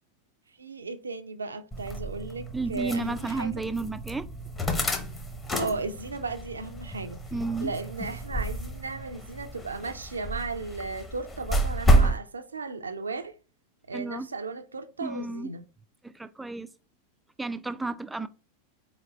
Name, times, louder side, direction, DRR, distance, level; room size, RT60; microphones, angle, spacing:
voice 1, 0.6-3.5 5.6-7.2 7.6-13.4 13.9-15.6, right 3 dB, 75° right, 0.5 m, -35 dB
sound 1, 1.7-12.2, right 1 dB, 15° left, 0.8 m, -29 dB
voice 2, 2.5-4.3 7.3-7.7 13.9-14.3 15.0-15.5 16.0-16.7 17.4-18.3, right 3 dB, 5° right, 0.3 m, -32 dB
4.4 x 4.0 x 3.0 m
figure-of-eight pair, 90°, 0 cm